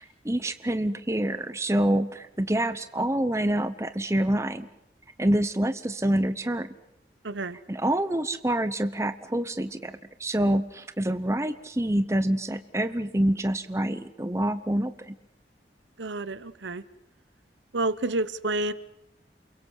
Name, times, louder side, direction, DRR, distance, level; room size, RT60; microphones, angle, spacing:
voice 1, 0.0-4.7 5.2-6.7 7.7-9.9 10.2-15.1, right 1 dB, 15° right, 11 dB, 0.8 m, -26 dB
voice 2, 7.2-7.6 16.0-16.8 17.7-18.7, right 2 dB, 90° right, 15 dB, 1.0 m, -29 dB
28.5 x 22.5 x 6.3 m, 0.81 s
head